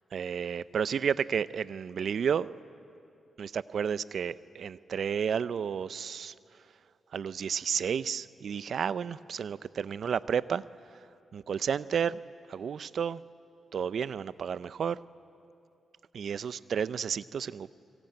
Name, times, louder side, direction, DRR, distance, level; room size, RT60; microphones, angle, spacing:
voice 1, 0.1-2.5 3.4-6.3 7.1-10.6 11.3-12.2 12.5-13.2 13.7-15.0 16.1-17.9, right 7 dB, 70° right, 17 dB, 0.6 m, -31 dB
27.0 x 24.0 x 9.1 m, 2.7 s
supercardioid pair, 50°, 0 cm